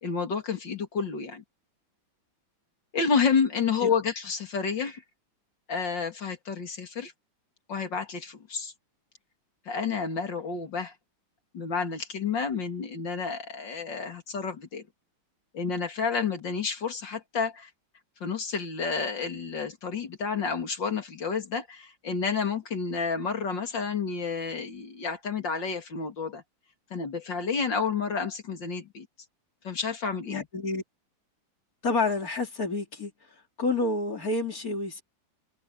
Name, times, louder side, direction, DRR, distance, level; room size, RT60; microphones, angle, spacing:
voice 1, 0.0-1.4 2.9-5.0 5.7-7.1 7.7-8.7 9.7-10.9 11.5-14.9 15.5-17.7 18.2-26.4 26.9-29.1 29.6-30.4, left 5 dB, 65° left, 3.2 m, -30 dB
voice 2, 30.3-30.8 31.8-33.1 33.6-35.0, left 3 dB, 45° left, 3.4 m, -29 dB
omnidirectional pair, 2.2 m